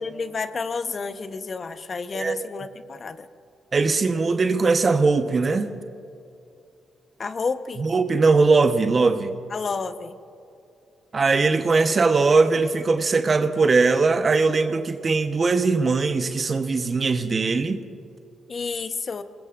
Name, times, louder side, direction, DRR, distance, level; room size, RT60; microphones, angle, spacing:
voice 1, 0.0-3.2 7.2-7.8 9.5-10.1 18.5-19.2, left 4 dB, 50° left, 10 dB, 1.0 m, -30 dB
voice 2, 2.1-2.5 3.7-5.7 7.8-9.4 11.1-17.8, right 4 dB, 45° right, 8 dB, 1.0 m, -20 dB
27.5 x 20.0 x 2.6 m, 2.5 s
hypercardioid pair, 45°, 0 cm